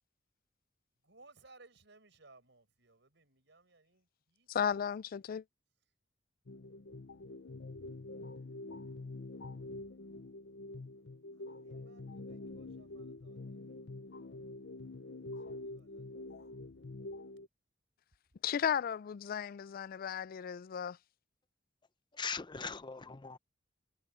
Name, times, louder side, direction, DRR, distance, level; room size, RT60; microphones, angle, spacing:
voice 1, 1.0-5.0 11.3-13.9 15.5-16.1, right 3 dB, 70° right, 7.1 m, -63 dB
voice 2, 4.5-5.4 18.4-21.0, left 8 dB, 50° left, 0.3 m, -35 dB
sound 1, 6.5-17.5, left 2 dB, 70° left, 0.7 m, -46 dB
voice 3, 22.1-23.4, left 5 dB, 25° left, 0.7 m, -40 dB
head